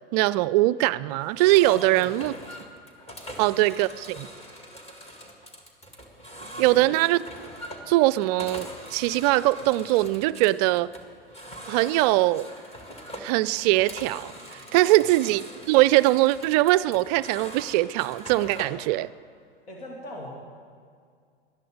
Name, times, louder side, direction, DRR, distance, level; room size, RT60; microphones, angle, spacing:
voice 1, 0.1-2.3 3.4-4.3 6.6-7.2 7.9-10.9 11.7-12.5 13.2-19.1, right 17 dB, 45° right, 19 dB, 0.4 m, -22 dB
sound 1, 1.2-18.9, equal, 20° left, 2.0 m, -43 dB
voice 2, 1.6-2.2 3.2-3.4 6.5-6.8 14.7-15.1 19.7-20.3, left 1 dB, 70° left, -1 dB, 2.5 m, -40 dB
18.5 x 12.0 x 5.1 m, 2.1 s
figure-of-eight pair, 85°, 30 cm